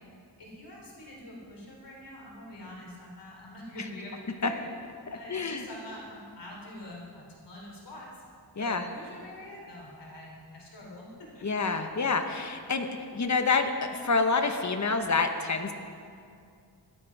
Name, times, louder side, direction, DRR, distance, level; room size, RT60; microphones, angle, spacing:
voice 1, 0.4-4.7 5.1-8.1 8.6-11.5, left 1 dB, 75° left, -2 dB, 3.7 m, -45 dB
voice 2, 5.3-5.7 8.6-8.8 11.4-12.9 13.1-15.7, left 4 dB, 45° left, 6 dB, 1.1 m, -27 dB
16.0 x 12.5 x 4.8 m, 2.4 s
wide cardioid pair, 110°, 41 cm